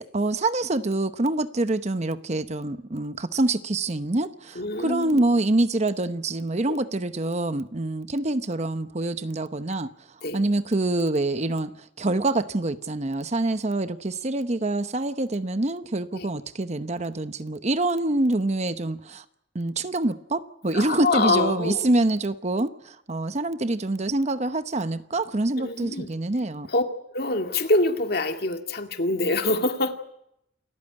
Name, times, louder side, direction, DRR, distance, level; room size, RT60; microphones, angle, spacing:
voice 1, 0.1-9.9 10.3-11.7 12.0-19.2 19.5-26.7, right 2 dB, 35° right, 0.9 m, -26 dB
voice 2, 4.6-5.2 6.7-6.8 10.2-10.4 16.1-16.3 20.7-21.9 25.6-26.1 26.7-26.8 27.1-29.9, left 2 dB, 55° left, 2.1 m, -25 dB
28.0 x 14.5 x 9.7 m
head